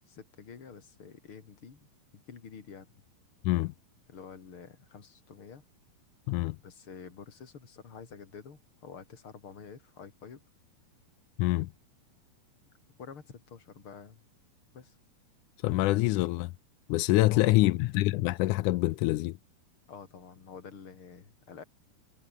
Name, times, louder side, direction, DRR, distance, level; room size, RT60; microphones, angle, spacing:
voice 1, 0.1-1.8 2.1-2.9 4.1-5.6 6.6-10.4 13.0-14.2 14.7-14.9 17.3-17.6 19.9-21.6, left 6 dB, 40° left, 3.5 m, -48 dB
voice 2, 11.4-11.7 15.6-16.5 16.9-19.4, left 19 dB, 80° left, 1.8 m, -25 dB
omnidirectional pair, 4.2 m